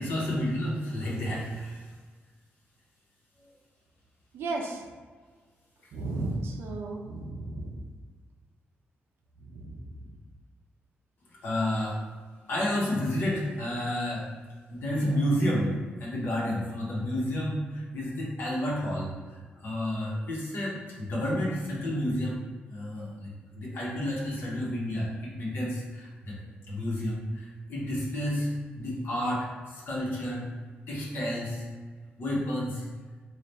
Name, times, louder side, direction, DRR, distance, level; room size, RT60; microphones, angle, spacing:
voice 1, 0.0-1.8 11.4-12.0 12.5-14.3 14.7-23.3 23.6-26.3 26.7-28.5 28.8-30.5 30.9-31.6 32.2-32.8, left 1 dB, 65° left, -5 dB, 1.0 m, -30 dB
voice 2, 4.3-4.8 5.9-7.7 9.6-9.8, right 2 dB, 85° right, 1 dB, 0.5 m, -34 dB
3.3 x 2.4 x 4.0 m, 1.5 s
wide cardioid pair, 135°, 4 cm